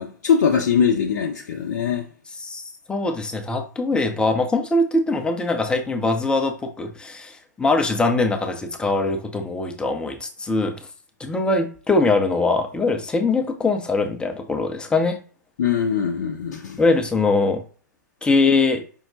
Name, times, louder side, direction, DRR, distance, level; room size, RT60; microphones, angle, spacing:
voice 1, 0.0-2.1 15.6-16.8, left 7 dB, 55° left, 0.6 m, -22 dB
voice 2, 2.9-10.8 11.2-15.2 16.8-17.6 18.2-18.8, left 3 dB, 10° left, 0.6 m, -22 dB
5.4 x 2.2 x 3.7 m
figure-of-eight pair, 105°, 10 cm